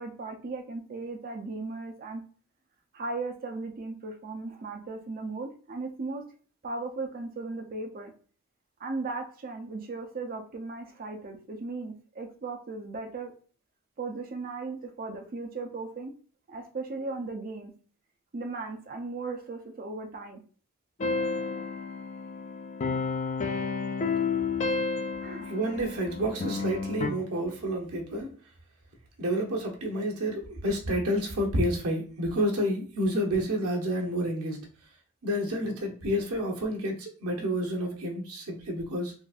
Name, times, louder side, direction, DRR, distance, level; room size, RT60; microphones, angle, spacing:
voice 1, 0.0-2.2 2.9-6.2 6.6-8.1 8.8-13.3 14.0-16.1 16.5-17.7 18.3-20.4 25.2-25.5, right 3 dB, 40° right, 4 dB, 0.6 m, -37 dB
sound 1, 21.0-27.1, left 4 dB, 35° left, 0.3 m, -31 dB
voice 2, 25.4-28.3 29.2-34.6 35.2-39.1, equal, 70° right, 0 dB, 0.9 m, -29 dB
3.9 x 2.5 x 2.4 m, 0.41 s
head